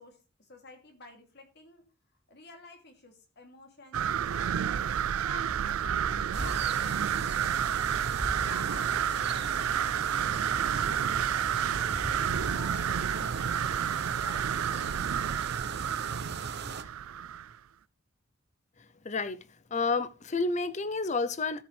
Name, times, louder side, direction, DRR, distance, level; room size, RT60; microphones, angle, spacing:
voice 1, 0.0-1.9 2.3-4.8 5.2-8.1 8.5-11.9 12.4-15.1, left 3 dB, 50° left, 3.0 m, -51 dB
sound 1, 3.9-17.5, right 9 dB, 85° right, 0.4 m, -30 dB
Wind, 4.8-14.6, equal, 10° right, 0.6 m, -44 dB
sound 2, 6.3-16.8, right 4 dB, 50° right, 0.9 m, -39 dB
voice 2, 19.0-19.4 19.7-21.6, left 3 dB, 35° left, 0.7 m, -30 dB
13.0 x 7.9 x 3.4 m
head